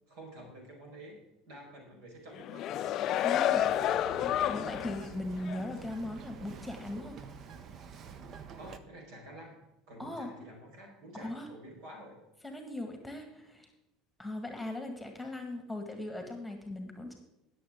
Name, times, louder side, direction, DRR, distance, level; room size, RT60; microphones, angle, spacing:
voice 1, 0.1-4.7 8.5-9.6 9.9-12.2, right 1 dB, 65° right, 0 dB, 4.8 m, -49 dB
sound 1, 2.3-5.1 5.5-5.6, left 11 dB, 50° left, 0.4 m, -30 dB
voice 2, 3.2-3.6 4.2-7.2 10.0-10.3 11.1-11.5 12.4-13.7 14.2-17.2, left 1 dB, 5° left, 4 dB, 1.8 m, -39 dB
Bird vocalization bird call bird song, 3.5-8.8, right 6 dB, 45° right, 0.9 m, -48 dB
20.5 x 7.1 x 3.7 m, 0.93 s
hypercardioid pair, 70°, 0 cm